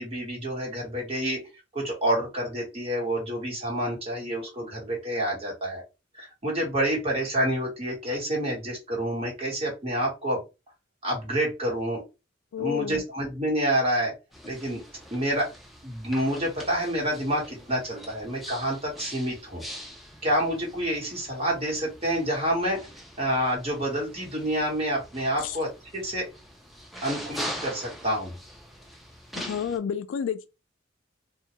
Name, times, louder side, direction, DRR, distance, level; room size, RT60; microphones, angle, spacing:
voice 1, 0.0-1.4 1.7-5.8 6.1-10.4 11.0-12.0 12.6-14.1 14.4-14.8 15.1-15.5 15.8-19.6 20.2-22.8 23.2-26.2 27.0-28.3, right 1 dB, 30° right, 1.2 m, -28 dB
voice 2, 12.5-13.0 25.4-25.6 29.3-30.5, left 7 dB, 75° left, 0.3 m, -30 dB
sound 1, 14.3-29.8, equal, ahead, 0.4 m, -43 dB
2.2 x 2.2 x 2.8 m
head